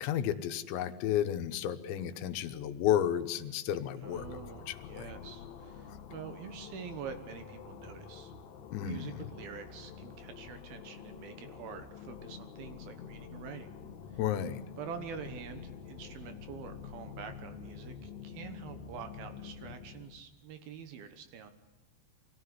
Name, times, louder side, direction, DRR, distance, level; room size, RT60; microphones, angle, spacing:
voice 1, 0.0-4.3 4.7-5.1 8.7-9.3 14.2-14.6, left 10 dB, 90° left, 9 dB, 3.3 m, -32 dB
sound 1, 4.0-20.2, left 7 dB, 65° left, 1.9 m, -47 dB
voice 2, 4.0-8.3 8.8-13.7 14.8-21.5, right 7 dB, 65° right, 8 dB, 2.8 m, -46 dB
24.5 x 16.0 x 9.7 m, 1.1 s
omnidirectional pair, 5.1 m